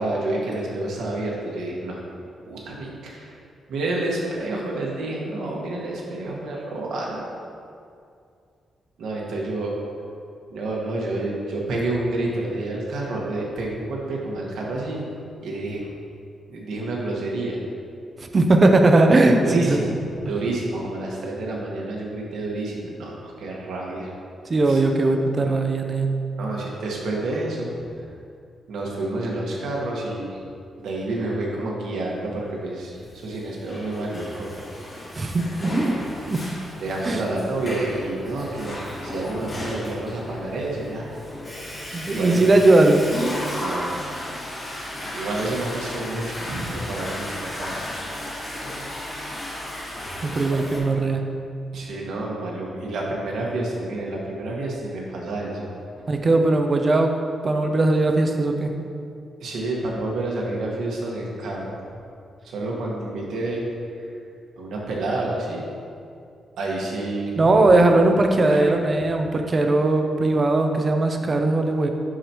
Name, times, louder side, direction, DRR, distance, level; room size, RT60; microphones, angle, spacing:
voice 1, 0.0-2.0 2.5-3.3 3.7-7.2 9.0-9.7 10.5-15.0 15.4-15.8 16.5-17.6 19.4-19.9 20.3-24.1 24.7-24.8 26.4-27.7 28.7-30.4 30.8-34.5 36.8-41.2 42.1-42.4 43.5-43.9 45.1-47.9 51.7-55.7 55.9-56.0 59.4-61.8 62.4-63.7 64.6-65.6 66.6-67.5 68.5-68.8, right 2 dB, 90° right, -3 dB, 1.5 m, -29 dB
voice 2, 18.3-19.8 24.5-26.2 35.1-35.9 36.3-36.4 37.0-37.2 41.9-43.0 50.2-51.3 56.1-57.1 57.4-58.7 67.4-71.9, right 2 dB, 25° right, 4 dB, 0.5 m, -19 dB
Water / Toilet flush, 33.3-50.8, left 1 dB, 25° left, 1.7 m, -34 dB
11.0 x 5.0 x 3.0 m, 2.4 s
wide cardioid pair, 180°, 0 cm